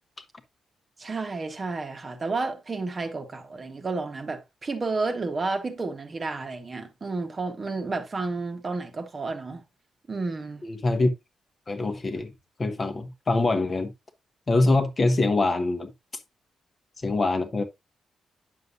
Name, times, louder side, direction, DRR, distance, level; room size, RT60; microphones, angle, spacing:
voice 1, 1.0-9.6 10.1-10.6, right 3 dB, 25° right, 1.2 m, -31 dB
voice 2, 10.6-11.1 11.7-12.3 12.6-13.9 14.5-15.9 17.0-17.6, left 2 dB, 25° left, 1.0 m, -24 dB
9.4 x 6.7 x 2.6 m
wide cardioid pair, 170°, 0 cm